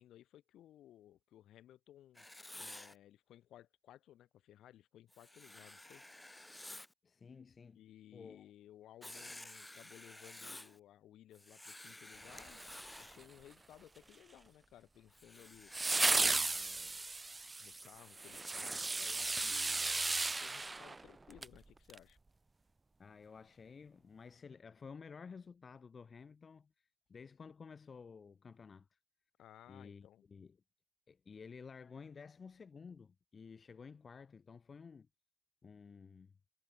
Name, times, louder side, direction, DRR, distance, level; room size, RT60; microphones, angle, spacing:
voice 1, 0.0-2.3 2.6-6.0 7.7-12.6 13.0-15.7 16.5-17.1 17.6-22.2 29.4-30.2, left 12 dB, 80° left, 4.8 m, -59 dB
Writing, 2.1-2.9 5.1-6.9 9.0-10.8 11.3-13.2 15.1-16.7 19.1-19.9, left 1 dB, 10° left, 2.2 m, -52 dB
voice 2, 7.0-7.8 8.1-8.5 23.0-29.0 29.7-30.6 31.1-35.1 35.6-36.3, left 5 dB, 40° left, 1.0 m, -53 dB
sound 1, 12.3-13.2 15.7-21.6 21.9-22.0, right 3 dB, 20° right, 0.4 m, -35 dB
cardioid pair, 90°, 0 cm